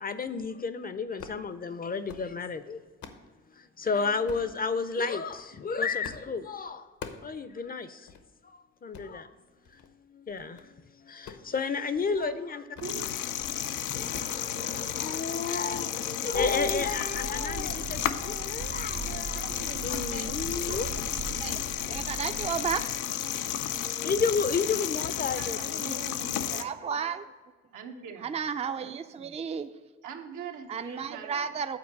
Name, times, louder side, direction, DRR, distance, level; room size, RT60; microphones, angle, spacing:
voice 1, 0.0-2.8 3.6-6.8 7.2-8.1 8.8-9.3 10.1-12.7 13.9-20.9 23.8-26.0, left 5 dB, 30° left, 12 dB, 0.5 m, -32 dB
sound 1, 1.1-1.5 1.9-2.3 2.7-3.3 4.3-4.5 5.2-5.5 6.0-6.3 6.6-7.3 7.7-7.8 8.1-8.3 8.8-9.1 9.6-9.9 10.3-10.7 11.1-12.3 12.6-13.0 13.3-13.6 13.9-14.4 14.7-15.1 15.7-15.9 16.3-16.8 17.1-17.2 17.6-17.9 18.6-18.8 19.1-19.3 19.7-19.8, left 6 dB, 70° left, 0.9 m, -47 dB
sound 2, 12.8-26.6, left 11 dB, 90° left, 0.5 m, -33 dB
sound 3, 16.3-22.8, right 7 dB, 70° right, 0.7 m, -40 dB
voice 2, 19.3-20.3 20.7-20.8 25.3-26.6 27.7-28.3 30.0-31.3, right 6 dB, 85° right, 3 dB, 1.1 m, -42 dB
voice 3, 21.8-22.8 23.5-23.6 26.5-27.3 28.2-29.7 30.7-31.8, right 7 dB, 20° right, 9 dB, 0.4 m, -33 dB
8.7 x 4.4 x 7.2 m, 1.4 s
cardioid pair, 90°, 30 cm